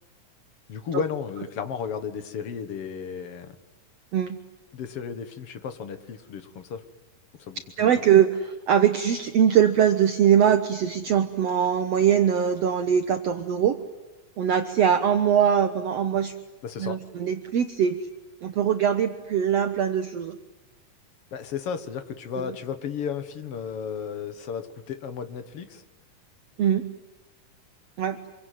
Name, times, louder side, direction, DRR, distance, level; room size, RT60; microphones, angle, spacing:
voice 1, 0.7-3.6 4.7-6.8 7.4-8.1 16.6-17.0 21.3-25.8, left 7 dB, 50° left, 9 dB, 2.0 m, -34 dB
voice 2, 7.8-13.8 14.4-16.3 16.8-18.0 18.4-20.4 22.4-22.5 26.6-26.8 28.0-28.2, right 9 dB, 65° right, 9 dB, 1.7 m, -22 dB
26.5 x 23.5 x 9.3 m, 1.1 s
omnidirectional pair, 4.0 m